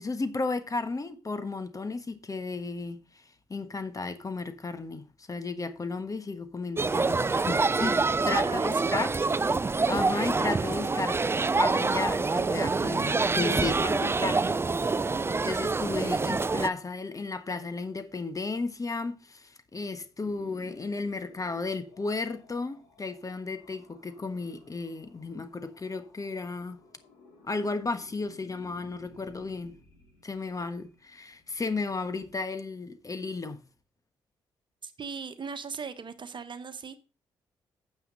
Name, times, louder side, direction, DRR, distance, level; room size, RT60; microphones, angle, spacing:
voice 1, 0.0-3.2 3.5-8.0 8.2-9.1 9.8-11.2 11.6-14.6 15.2-26.8 27.4-29.7 30.2-33.6, left 3 dB, 30° left, 1.3 m, -34 dB
sound 1, 6.8-16.7, right 3 dB, 20° right, 0.5 m, -26 dB
voice 2, 8.4-9.1 34.8-37.0, right 5 dB, 45° right, 1.3 m, -39 dB
sound 2, 20.2-32.3, left 3 dB, 80° left, 4.2 m, -56 dB
9.1 x 8.0 x 3.9 m
hypercardioid pair, 45°, 11 cm